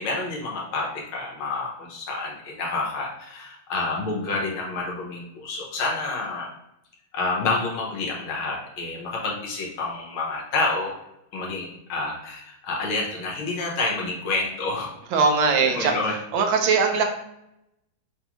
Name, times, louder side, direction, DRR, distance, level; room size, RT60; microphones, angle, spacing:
voice 1, 0.0-6.5 7.1-10.9 11.3-14.9 15.6-16.1, left 3 dB, 75° left, -2 dB, 1.7 m, -28 dB
voice 2, 15.1-16.0 16.3-17.0, right 4 dB, 75° right, 4 dB, 1.4 m, -20 dB
5.4 x 2.4 x 3.0 m, 0.82 s
omnidirectional pair, 2.4 m